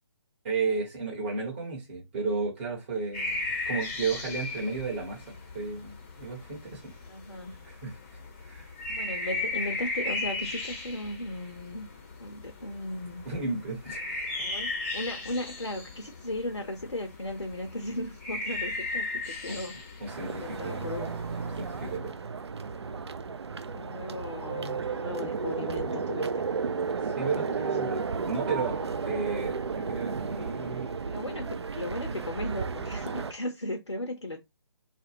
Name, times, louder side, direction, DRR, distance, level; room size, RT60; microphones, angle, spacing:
voice 1, 0.4-5.2 5.5-6.9 7.6-8.0 8.4-8.7 13.2-14.0 19.5-19.7 20.0-20.9 21.6-22.1 27.2-30.9, right 4 dB, 25° right, 1.1 m, -33 dB
sound 1, 3.1-22.0, left 2 dB, 30° left, 0.6 m, -37 dB
voice 2, 7.1-7.6 8.9-11.9 12.2-13.3 14.4-19.9 20.2-21.1 23.7-26.5 27.4-27.5 31.0-34.4, left 1 dB, 90° left, 0.6 m, -36 dB
sound 2, 20.1-33.3, right 5 dB, 70° right, 0.4 m, -33 dB
2.5 x 2.0 x 2.9 m
figure-of-eight pair, 140°, 14 cm